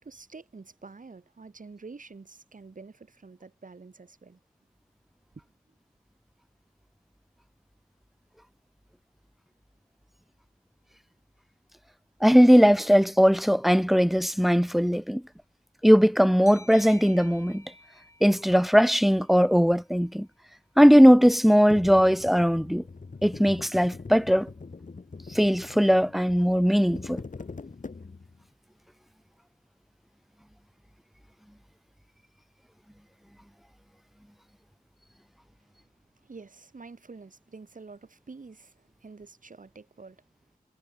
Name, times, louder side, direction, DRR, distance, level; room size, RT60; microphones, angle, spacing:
voice 1, 0.0-4.4 36.2-40.2, right 4 dB, 60° right, 3.8 m, -47 dB
voice 2, 12.2-15.2 15.8-17.6 18.2-20.3 20.8-22.8 23.2-24.5 25.3-27.2, equal, ahead, 0.4 m, -19 dB
sound 1, 16.5-19.8, left 1 dB, 20° left, 6.0 m, -52 dB
sound 2, 21.7-28.4, left 4 dB, 55° left, 2.7 m, -43 dB
wide cardioid pair, 70°, 15 cm